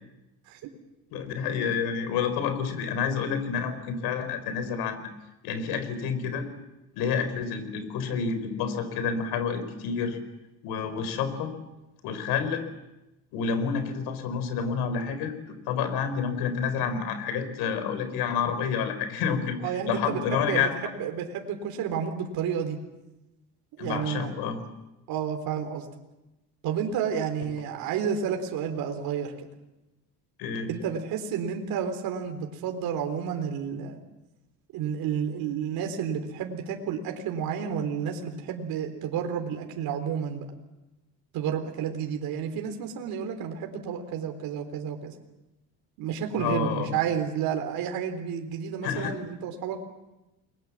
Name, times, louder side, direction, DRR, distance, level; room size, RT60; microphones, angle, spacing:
voice 1, 1.1-5.1 5.4-6.5 6.9-10.2 10.6-11.5 12.0-12.6 13.3-15.3 15.7-20.8 23.8-24.6 30.4-30.7 46.4-47.0 48.8-49.1, left 6 dB, 75° left, 10 dB, 4.5 m, -29 dB
voice 2, 19.6-22.8 23.8-24.3 25.1-25.9 26.6-29.3 30.7-34.0 34.7-40.5 41.3-45.1 46.0-49.8, right 7 dB, 65° right, 4 dB, 3.8 m, -31 dB
29.5 x 22.0 x 7.4 m, 0.98 s
cardioid pair, 130°, 38 cm